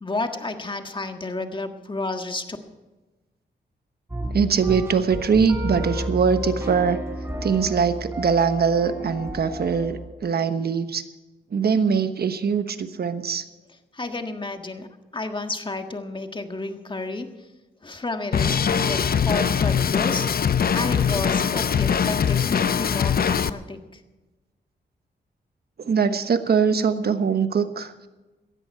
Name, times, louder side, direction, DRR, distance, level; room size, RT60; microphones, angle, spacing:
voice 1, 0.0-2.6 13.9-17.5 17.8-20.3 20.7-24.0, left 2 dB, 25° left, 6 dB, 1.6 m, -31 dB
sound 1, 4.1-10.1, equal, 15° right, 5.1 m, -31 dB
voice 2, 4.3-7.0 7.4-11.0 11.5-13.4 25.8-27.9, right 6 dB, 60° right, 10 dB, 1.2 m, -22 dB
Drum kit, 18.3-23.5, left 7 dB, 55° left, 0.7 m, -22 dB
18.0 x 13.5 x 4.6 m, 1.2 s
cardioid pair, 85°, 19 cm